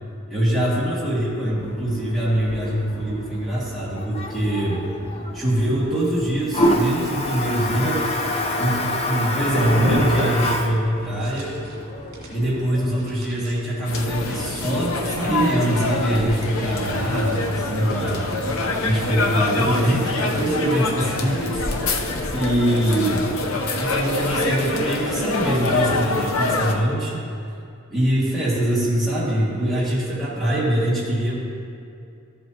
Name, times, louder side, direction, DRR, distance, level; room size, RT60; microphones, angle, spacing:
voice 1, 0.3-4.8 5.3-8.0 8.6-11.6 12.3-18.2 18.8-21.6 22.3-23.2 23.8-27.2 27.9-31.3, right 1 dB, ahead, -9 dB, 2.1 m, -23 dB
Toilet flush, 1.6-13.1, left 1 dB, 30° left, 0.7 m, -28 dB
sound 1, 8.1-9.0 9.4-10.6 11.0-11.8 12.1-12.4 12.8-13.8 14.3-14.6 15.7-15.9 16.6-16.8 17.2-17.5 18.1-18.4 18.8-19.0 19.7-19.9 20.4-20.6 21.2-21.5 21.9-22.0, equal, 65° right, 2.0 m, -31 dB
sound 2, 13.9-26.8, left 2 dB, 75° left, 0.8 m, -25 dB
13.5 x 7.7 x 2.9 m, 2.5 s
head